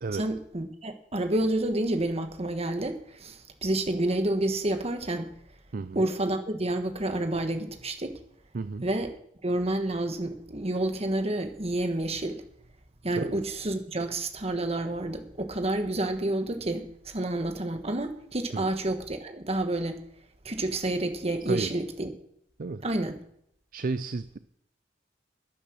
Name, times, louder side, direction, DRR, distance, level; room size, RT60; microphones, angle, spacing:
voice 1, 0.1-5.3 5.9-8.2 8.8-9.1 9.4-12.4 13.0-20.0 20.4-22.1 22.8-23.2, right 1 dB, 35° right, 7 dB, 1.5 m, -29 dB
voice 2, 5.7-6.0 8.5-8.9 13.1-13.4 18.5-18.7 21.4-21.7 22.6-22.8 23.7-24.4, right 3 dB, 50° right, 13 dB, 0.5 m, -32 dB
12.0 x 10.0 x 6.2 m, 0.71 s
head